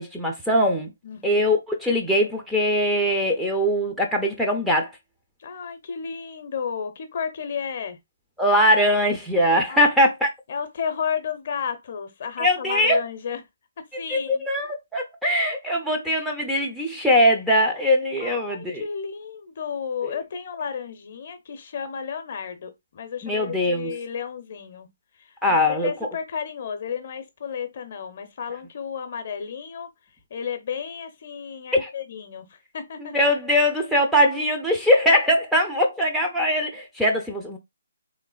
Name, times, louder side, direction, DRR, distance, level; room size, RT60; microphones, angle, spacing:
voice 1, 0.0-0.9 1.2-4.9 8.4-10.3 12.4-13.0 14.1-18.8 20.0-20.1 23.2-23.9 25.4-25.9 31.7-31.9 33.0-37.6, equal, ahead, 0.6 m, -21 dB
voice 2, 1.0-1.4 5.4-8.0 9.7-9.9 10.5-13.4 13.8-14.4 18.2-24.9 25.2-29.9 30.3-33.2, left 7 dB, 45° left, 0.7 m, -32 dB
3.5 x 3.2 x 2.3 m
figure-of-eight pair, 140°, 0 cm